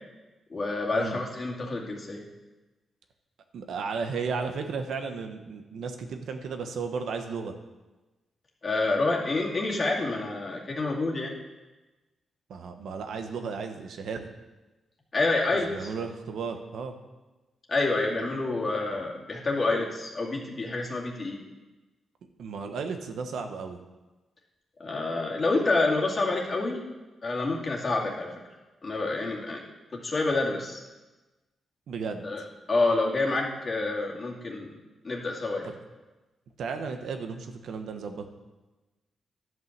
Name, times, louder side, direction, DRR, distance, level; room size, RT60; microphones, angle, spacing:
voice 1, 0.5-2.2 8.6-11.3 15.1-15.9 17.7-21.4 24.8-26.8 27.2-28.3 28.8-29.6 30.0-30.8 32.2-32.4 32.7-34.7 35.0-35.7, left 3 dB, 35° left, -2 dB, 2.4 m, -28 dB
voice 2, 3.5-7.5 12.5-14.3 15.5-16.9 22.4-23.8 31.9-32.3 36.6-38.3, right 5 dB, 80° right, 6 dB, 1.1 m, -34 dB
11.5 x 5.5 x 7.3 m, 1.1 s
cardioid pair, 105°, 0 cm